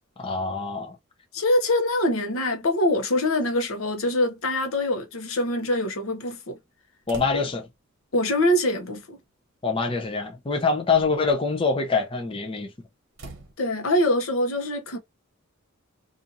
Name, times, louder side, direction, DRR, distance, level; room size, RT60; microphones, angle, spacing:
voice 1, 0.2-1.0 7.1-7.6 9.6-12.7, left 4 dB, 25° left, 0.5 m, -25 dB
voice 2, 1.3-6.6 7.3-7.4 8.1-9.2 13.6-15.0, left 1 dB, 80° left, 0.8 m, -24 dB
sound 1, 7.1-7.8 9.0-9.1 10.0-10.2 10.7-11.4 13.1-13.5, right 2 dB, 60° right, 0.9 m, -44 dB
2.8 x 2.5 x 2.6 m
head